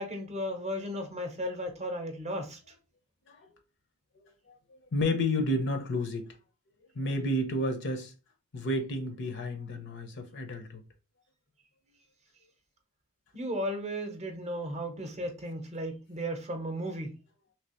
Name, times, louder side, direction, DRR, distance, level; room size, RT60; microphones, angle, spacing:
voice 1, 0.0-2.6 13.3-17.2, equal, 30° right, 0.7 m, -35 dB
voice 2, 4.9-6.3 6.9-8.1 8.5-10.8, left 1 dB, 55° left, 0.7 m, -31 dB
3.3 x 2.9 x 2.9 m
head